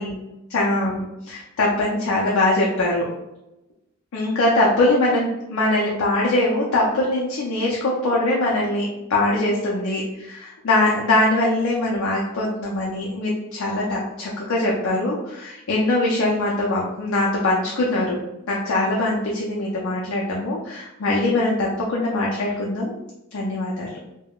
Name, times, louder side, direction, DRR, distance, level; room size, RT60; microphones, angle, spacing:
voice 1, 0.5-3.1 4.1-18.2 18.5-23.0 23.3-23.9, left 2 dB, 80° left, -4 dB, 0.5 m, -22 dB
3.5 x 2.2 x 2.3 m, 0.91 s
head